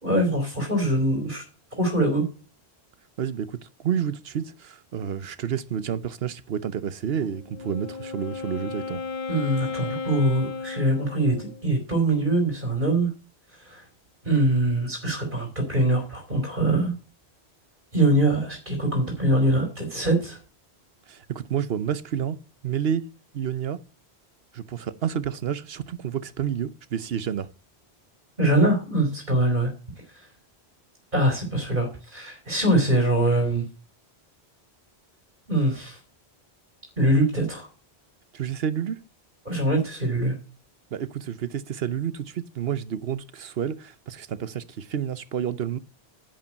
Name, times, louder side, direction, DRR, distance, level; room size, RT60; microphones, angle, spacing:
voice 1, 0.0-1.4 1.8-2.2 9.3-13.1 13.6-13.8 14.2-16.9 17.9-20.4 28.4-29.7 30.1-30.3 31.1-33.6 35.5-36.0 37.0-37.7 39.4-40.3, right 1 dB, 45° right, 3.4 m, -23 dB
voice 2, 3.2-9.0 21.1-22.4 22.6-23.1 23.3-23.8 24.5-27.5 38.3-39.0 40.9-45.8, right 8 dB, 70° right, 1.0 m, -29 dB
Wind instrument woodwind instrument, 7.3-11.7, left 4 dB, 50° left, 0.7 m, -34 dB
10.5 x 5.5 x 8.4 m
omnidirectional pair, 1.1 m